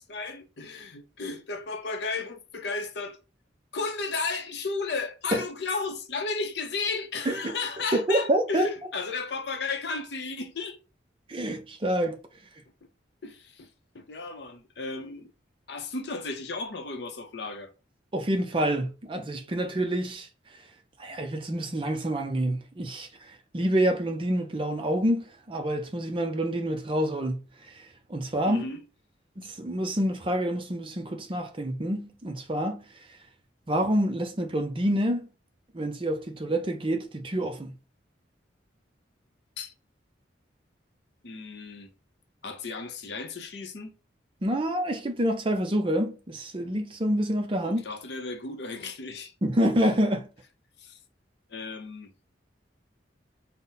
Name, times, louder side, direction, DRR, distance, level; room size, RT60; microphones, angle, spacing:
voice 1, 0.0-3.2 3.7-10.8 13.2-13.7 13.9-15.3 15.7-17.7 28.5-28.8 39.6-39.7 41.2-41.9 42.4-43.9 47.6-49.3 50.8-51.0 51.5-52.1, left 4 dB, 65° left, 0.6 m, -34 dB
voice 2, 7.9-8.7 11.3-12.2 18.1-20.3 21.0-27.4 27.7-28.7 29.4-32.9 33.7-35.3 35.7-37.7 44.4-47.8 49.4-50.3, right 1 dB, 25° right, 0.5 m, -27 dB
4.0 x 2.1 x 3.8 m
head